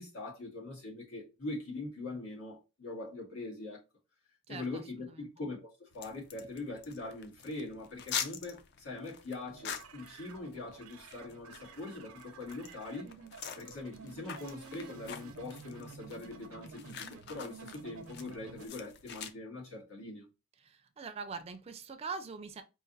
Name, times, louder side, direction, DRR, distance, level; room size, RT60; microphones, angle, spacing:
voice 1, 0.0-3.8 4.5-13.1 13.6-20.3, left 2 dB, 80° left, 1.9 m, -42 dB
voice 2, 4.5-5.3 20.6-22.6, right 5 dB, 30° right, 0.3 m, -43 dB
sound 1, 5.9-19.3, left 7 dB, 50° left, 0.4 m, -45 dB
sound 2, 9.4-18.7, right 5 dB, 85° right, 0.5 m, -51 dB
4.8 x 2.5 x 2.6 m
head